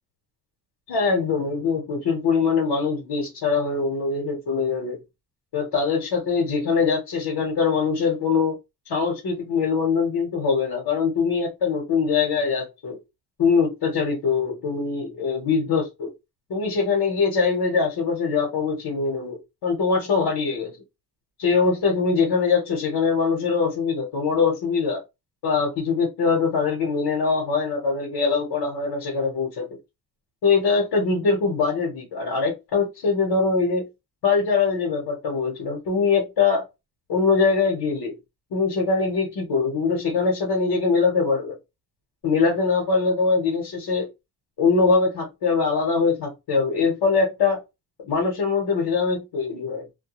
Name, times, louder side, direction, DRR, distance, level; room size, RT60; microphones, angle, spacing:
voice 1, 0.9-5.0 5.5-8.6 8.9-13.0 13.4-16.1 16.5-20.7 21.4-25.0 25.4-29.7 30.4-33.8 34.2-36.7 37.1-38.2 38.5-41.5 42.2-44.1 44.6-47.6 48.0-49.8, left 5 dB, 80° left, 1.1 m, -22 dB
2.2 x 2.2 x 2.9 m
cardioid pair, 110°, 40 cm